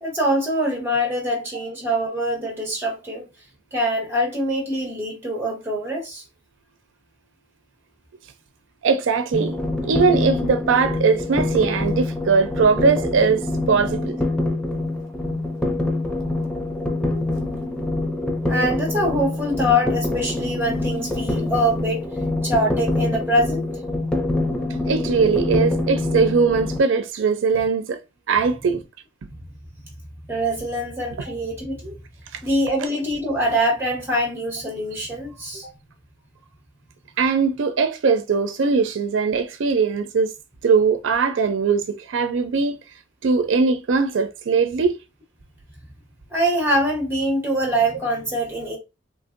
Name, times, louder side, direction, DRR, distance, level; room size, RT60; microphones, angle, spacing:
voice 1, 0.0-3.2 3.7-6.2 18.5-22.0 22.4-23.6 30.3-31.9 32.4-35.7 46.3-48.8, equal, 10° right, 1.2 m, -24 dB
voice 2, 8.8-9.6 9.9-14.2 24.9-28.0 28.3-28.8 31.2-31.3 32.3-32.4 37.2-40.3 40.6-42.8 43.2-45.0, right 5 dB, 85° right, 0.4 m, -20 dB
sound 1, 9.3-26.8, left 2 dB, 5° left, 0.4 m, -25 dB
3.2 x 2.5 x 2.4 m
head